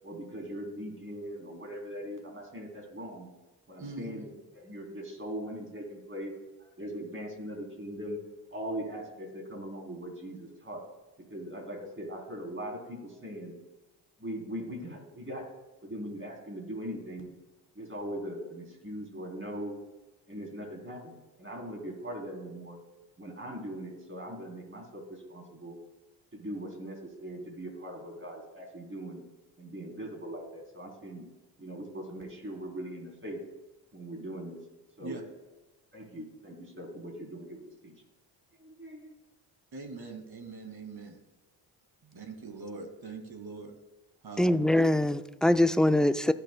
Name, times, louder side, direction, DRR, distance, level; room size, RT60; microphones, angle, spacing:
voice 1, 0.0-3.3 3.7-6.3 6.6-8.2 8.5-10.8 11.3-13.5 14.2-15.5 15.8-17.3 17.7-19.8 20.3-22.8 23.2-25.8 26.3-29.2 29.6-31.3 31.6-33.4 33.9-34.6 35.0-35.2 35.9-38.0 38.6-39.1, equal, 25° right, 1 dB, 3.3 m, -40 dB
voice 2, 3.8-4.2 35.0-35.2 39.7-41.2 42.0-43.7 44.2-44.6, right 3 dB, 45° right, 5 dB, 2.2 m, -42 dB
voice 3, 44.4-46.3, left 1 dB, ahead, 12 dB, 0.4 m, -23 dB
17.5 x 6.7 x 2.2 m, 1.1 s
hypercardioid pair, 50°, 50 cm